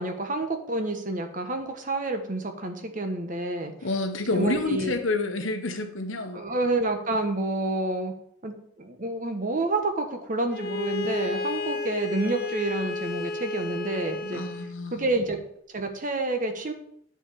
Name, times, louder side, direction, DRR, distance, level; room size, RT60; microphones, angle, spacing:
voice 1, 0.0-3.7 4.3-5.0 6.3-8.1 8.4-14.4 14.9-15.4 15.7-16.7, right 2 dB, 40° right, 5 dB, 1.4 m, -29 dB
voice 2, 3.8-6.4 14.3-15.1, left 2 dB, 90° left, 6 dB, 1.4 m, -29 dB
Bowed string instrument, 10.5-14.7, left 3 dB, 50° left, 1.0 m, -32 dB
9.5 x 4.9 x 7.0 m, 0.69 s
head